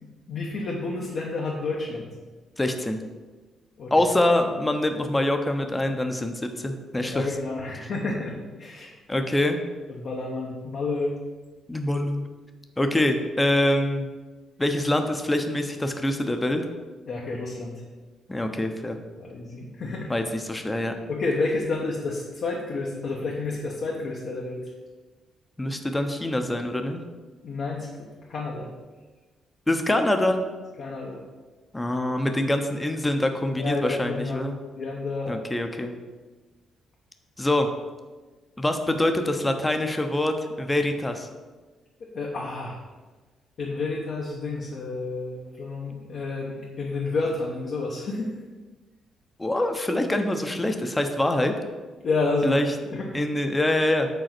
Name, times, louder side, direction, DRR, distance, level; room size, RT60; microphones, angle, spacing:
voice 1, 0.0-2.1 3.8-3.9 7.0-8.9 9.9-11.1 17.1-17.8 19.2-20.1 21.1-24.6 27.4-28.7 30.8-31.2 33.6-35.4 42.1-42.8 43.6-48.3 52.0-52.6 52.9-53.1, left 3 dB, 60° left, -2 dB, 0.9 m, -30 dB
voice 2, 2.6-3.0 3.9-7.3 9.1-9.6 11.7-12.2 12.8-14.1 14.6-16.6 18.3-19.0 20.1-20.9 25.6-27.0 29.7-30.4 31.7-34.5 35.3-35.9 37.4-37.7 38.6-41.3 49.4-51.5 52.4-52.7 53.1-54.1, left 1 dB, 15° left, 6 dB, 0.7 m, -25 dB
5.2 x 3.9 x 5.9 m, 1.3 s
cardioid pair, 90°, 0 cm